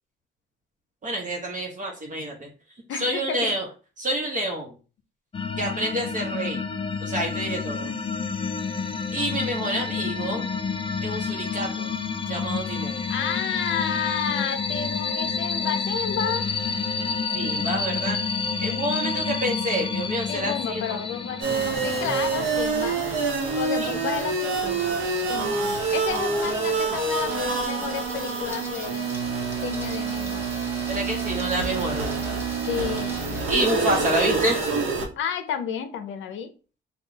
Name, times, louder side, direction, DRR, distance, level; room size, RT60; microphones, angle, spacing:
voice 1, 1.0-2.4 3.0-3.7 4.0-4.7 5.6-6.6 7.0-8.0 9.1-10.5 11.0-11.9 12.3-13.0 17.3-18.2 18.6-21.0 23.8-24.0 30.9-32.2 33.5-34.6, right 1 dB, 40° right, 0 dB, 0.9 m, -28 dB
voice 2, 2.9-3.5 13.1-16.5 20.3-23.1 23.6-25.0 25.3-29.1 29.6-30.5 32.7-33.3 35.2-36.5, left 8 dB, 75° left, 8 dB, 0.5 m, -31 dB
sound 1, 5.3-22.6, left 5 dB, 25° left, 0.4 m, -29 dB
sound 2, 21.4-35.1, right 4 dB, 90° right, 1.0 m, -27 dB
sound 3, 21.6-34.0, right 1 dB, 10° right, 1.0 m, -44 dB
3.7 x 2.3 x 3.9 m, 0.35 s
cardioid pair, 90°, 20 cm